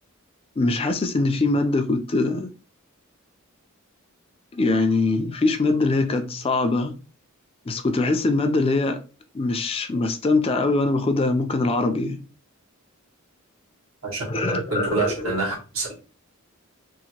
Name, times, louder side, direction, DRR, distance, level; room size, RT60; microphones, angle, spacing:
voice 1, 0.6-2.5 4.5-6.9 7.7-9.0 9.3-12.2 14.3-15.4, left 2 dB, 25° left, 0.4 m, -22 dB
voice 2, 14.0-15.9, right 3 dB, 70° right, 1.3 m, -28 dB
2.8 x 2.5 x 2.8 m
head